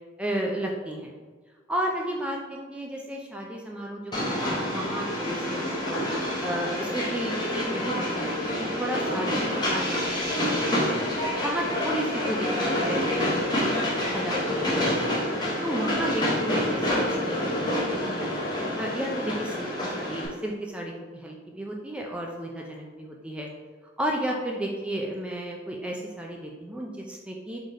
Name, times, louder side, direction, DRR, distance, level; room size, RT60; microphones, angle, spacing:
voice 1, 0.2-1.2 1.7-2.4 2.7-6.0 6.4-11.0 11.4-15.1 15.6-18.3 18.8-23.5 24.0-27.6, right 1 dB, 5° right, -1 dB, 0.4 m, -33 dB
Train, 4.1-20.3, left 1 dB, 20° left, 0.9 m, -27 dB
3.8 x 3.3 x 4.1 m, 1.4 s
head